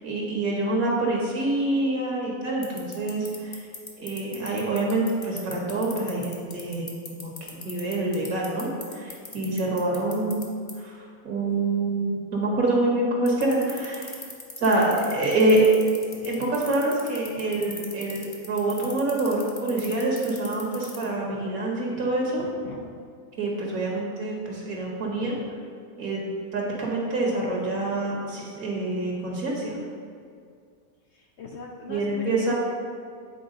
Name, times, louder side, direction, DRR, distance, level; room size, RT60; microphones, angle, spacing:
voice 1, 0.0-3.6 4.0-10.4 10.8-10.9 11.2-14.2 14.6-15.7 16.2-22.5 23.4-25.4 26.0-29.8 31.9-32.5, right 2 dB, 65° right, -2 dB, 1.8 m, -26 dB
sound 1, 2.6-10.4 10.7-10.8 13.3-21.0, left 4 dB, 35° left, 0.8 m, -37 dB
voice 2, 21.9-23.0 25.1-25.5 31.1-32.5, left 4 dB, 65° left, 0 dB, 0.7 m, -43 dB
8.4 x 4.6 x 3.9 m, 2.2 s
omnidirectional pair, 1.6 m